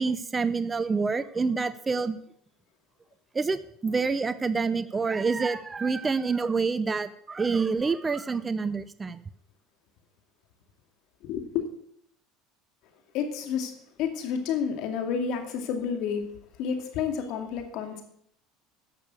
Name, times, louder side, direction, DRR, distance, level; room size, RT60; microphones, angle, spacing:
voice 1, 0.0-2.2 3.3-9.2, right 4 dB, 20° right, 0.6 m, -27 dB
voice 2, 11.2-11.7 13.1-13.7 14.0-16.3 16.5-18.0, left 7 dB, 65° left, 2.3 m, -30 dB
11.0 x 6.8 x 8.3 m
supercardioid pair, 95°, 0 cm